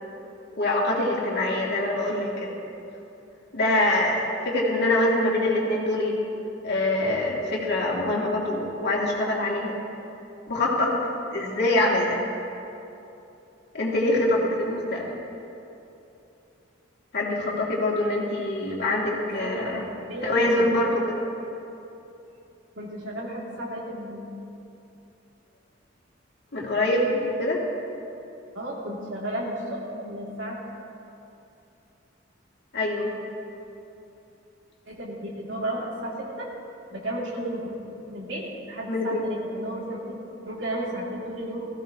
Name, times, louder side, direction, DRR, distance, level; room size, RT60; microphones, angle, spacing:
voice 1, 0.5-2.5 3.5-6.2 6.6-9.8 10.5-11.0 11.3-12.2 13.7-15.1 17.1-19.8 20.2-21.2 26.5-27.7 32.7-33.1 38.9-39.2, left 1 dB, 60° left, -3 dB, 2.6 m, -24 dB
voice 2, 19.3-20.8 21.1-21.5 22.7-24.3 28.5-30.6 34.9-36.5 36.9-40.1 40.4-41.7, right 1 dB, 85° right, -3 dB, 2.8 m, -33 dB
18.5 x 15.5 x 3.0 m, 2.8 s
head